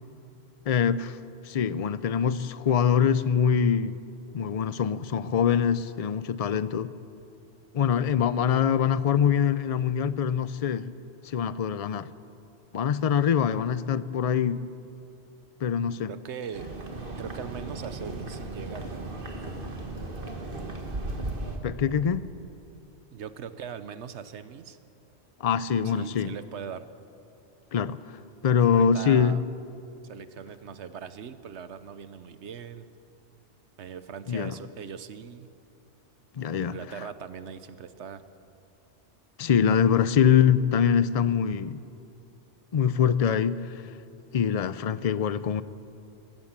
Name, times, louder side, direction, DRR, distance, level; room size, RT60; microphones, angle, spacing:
voice 1, 0.7-1.2 1.4-4.0 4.3-6.9 7.7-10.9 11.2-12.1 12.7-14.6 15.6-16.1 21.6-22.2 25.4-26.3 27.7-28.0 28.4-29.4 34.3-34.5 36.3-36.8 39.4-41.8 42.7-43.8 44.3-45.6, left 7 dB, 45° left, 0.5 m, -24 dB
voice 2, 16.1-16.7 17.2-18.9 23.1-24.8 25.8-26.9 28.7-29.4 30.0-32.9 33.8-35.5 36.6-38.2, right 7 dB, 85° right, 1.2 m, -40 dB
sound 1, 16.5-21.6, right 2 dB, 50° right, 2.0 m, -36 dB
21.0 x 17.0 x 7.4 m
omnidirectional pair, 1.1 m